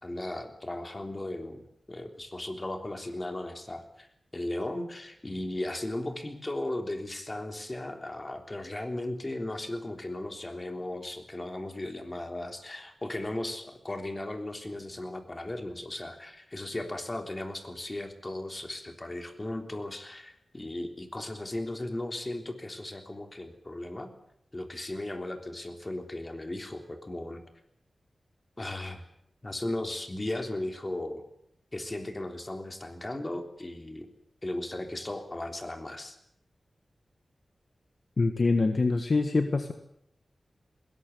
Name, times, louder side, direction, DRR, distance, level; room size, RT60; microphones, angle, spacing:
voice 1, 0.0-4.1 4.3-24.1 24.5-27.4 28.6-29.1 29.4-31.2 31.7-34.1 34.4-36.1, left 1 dB, 30° left, 5 dB, 3.4 m, -36 dB
voice 2, 38.2-39.7, left 3 dB, 55° left, 7 dB, 1.6 m, -25 dB
21.0 x 18.0 x 8.3 m, 0.73 s
wide cardioid pair, 75°, 0 cm